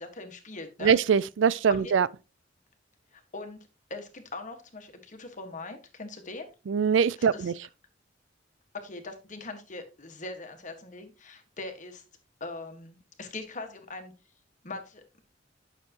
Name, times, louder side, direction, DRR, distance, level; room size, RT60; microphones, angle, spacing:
voice 1, 0.0-0.9 1.7-2.0 3.1-3.6 3.9-6.5 7.2-7.5 8.7-12.0 12.4-14.1 14.6-15.0, left 3 dB, 45° left, 1.6 m, -41 dB
voice 2, 0.8-2.1 6.7-7.5, right 6 dB, 90° right, 0.4 m, -23 dB
9.5 x 6.6 x 2.9 m
head